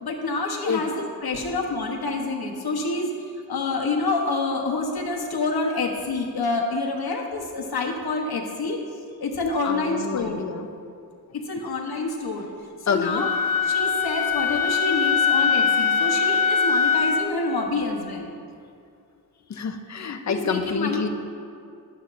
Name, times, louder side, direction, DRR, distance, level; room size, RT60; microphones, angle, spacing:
voice 1, 0.0-3.1 3.5-8.8 9.2-10.4 11.3-12.5 12.8-13.4 13.6-18.3 20.3-21.0, left 3 dB, 75° left, 1 dB, 1.1 m, -27 dB
voice 2, 9.6-10.7 12.9-13.3 19.5-21.1, left 6 dB, 45° left, 7 dB, 0.5 m, -28 dB
Wind instrument woodwind instrument, 13.1-17.3, left 6 dB, 20° right, 1.5 m, -22 dB
11.5 x 8.6 x 2.5 m, 2.4 s
wide cardioid pair, 170°, 38 cm